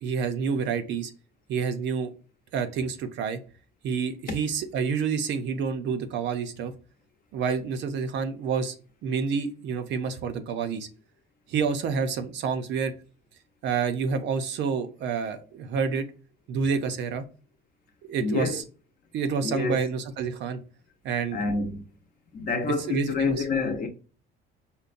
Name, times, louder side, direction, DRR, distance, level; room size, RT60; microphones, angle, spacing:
voice 1, 0.0-1.1 1.5-2.1 2.5-3.4 3.8-6.7 7.3-8.7 9.0-10.9 11.5-12.9 13.6-16.1 16.5-17.2 18.1-18.6 19.1-20.6 21.0-21.5 22.9-23.4, right 6 dB, 60° right, 0.6 m, -28 dB
voice 2, 18.2-18.6 19.4-19.8 21.3-21.8 22.3-23.9, left 4 dB, 45° left, 0.7 m, -27 dB
5.2 x 2.1 x 2.5 m
cardioid pair, 145°, 20 cm